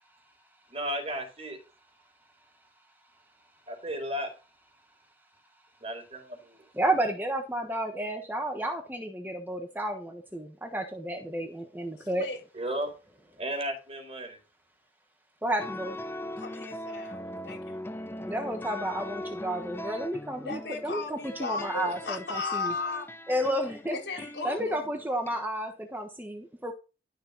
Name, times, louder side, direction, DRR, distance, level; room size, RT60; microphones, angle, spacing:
voice 1, 0.7-1.6 3.7-4.3 5.8-6.6 12.5-12.9 13.4-14.4, equal, 35° right, 5 dB, 4.1 m, -34 dB
voice 2, 6.7-12.2 15.4-16.0 18.2-22.7 23.3-26.7, right 1 dB, 10° right, 4 dB, 1.2 m, -32 dB
voice 3, 12.0-12.4 16.4-17.8 20.4-23.1 23.8-24.9, left 3 dB, 75° left, 3 dB, 4.7 m, -36 dB
sound 1, 15.6-25.4, left 1 dB, 15° left, 0.7 m, -40 dB
12.0 x 6.7 x 4.0 m, 0.30 s
head